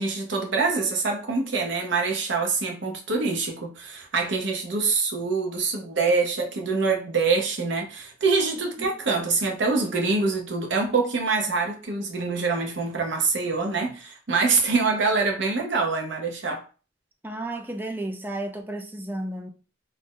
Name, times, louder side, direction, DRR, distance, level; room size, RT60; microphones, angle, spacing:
voice 1, 0.0-16.6, right 4 dB, 65° right, 0.7 m, -25 dB
voice 2, 17.2-19.5, right 1 dB, 10° right, 0.4 m, -32 dB
2.5 x 2.0 x 3.6 m
head